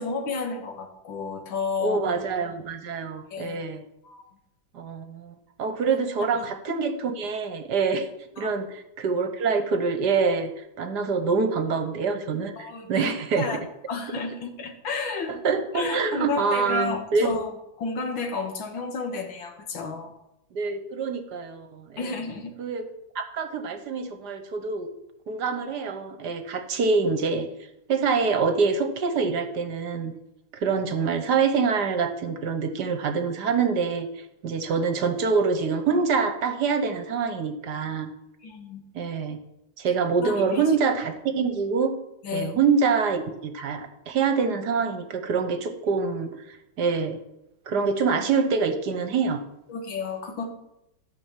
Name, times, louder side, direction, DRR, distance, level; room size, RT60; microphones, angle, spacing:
voice 1, 0.0-2.2 3.3-3.6 4.0-4.3 6.2-6.5 8.4-8.5 12.6-13.6 13.9-15.4 15.7-17.5 17.8-20.1 22.0-22.5 38.4-38.8 40.2-40.6 42.2-42.5 49.7-50.5, left 4 dB, 85° left, 5 dB, 2.3 m, -32 dB
voice 2, 1.8-3.8 4.7-8.0 8.4-10.5 10.8-13.6 15.4-17.4 20.5-22.0 22.6-22.8 23.1-24.9 25.3-27.5 27.9-30.1 30.5-34.1 34.4-38.1 38.9-39.4 39.8-41.9 42.3-47.2 47.7-49.4, right 5 dB, 60° right, 8 dB, 1.5 m, -25 dB
13.5 x 6.1 x 7.4 m, 0.88 s
omnidirectional pair, 2.1 m